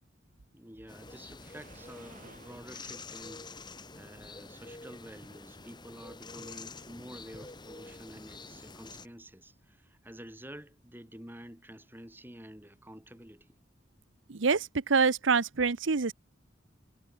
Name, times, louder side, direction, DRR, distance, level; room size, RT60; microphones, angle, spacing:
voice 1, 0.5-13.6, equal, 10° right, 4.0 m, -49 dB
sound 1, 0.9-9.1, left 3 dB, 25° left, 2.6 m, -47 dB
Waves surf, 1.3-2.8, right 3 dB, 45° right, 5.0 m, -55 dB
voice 2, 14.3-16.1, right 5 dB, 80° right, 0.9 m, -26 dB
head